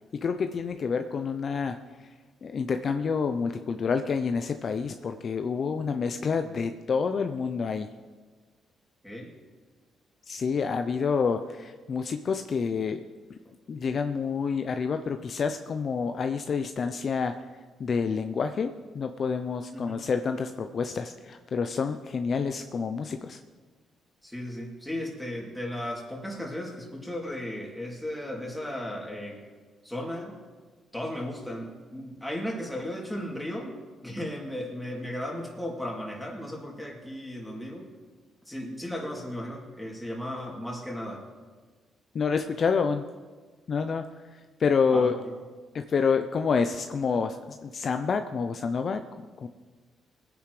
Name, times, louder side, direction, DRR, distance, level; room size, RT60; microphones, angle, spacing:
voice 1, 0.1-2.1 2.4-7.9 10.3-13.0 13.7-17.4 17.8-23.4 42.1-43.1 43.7-45.2 45.7-49.0 49.4-49.5, left 5 dB, 50° left, 7 dB, 0.6 m, -28 dB
voice 2, 24.2-29.4 29.8-30.3 30.9-37.8 38.5-41.2 44.9-45.1, left 1 dB, 5° left, -2 dB, 2.9 m, -35 dB
20.5 x 9.8 x 3.3 m, 1.4 s
cardioid pair, 90°, 0 cm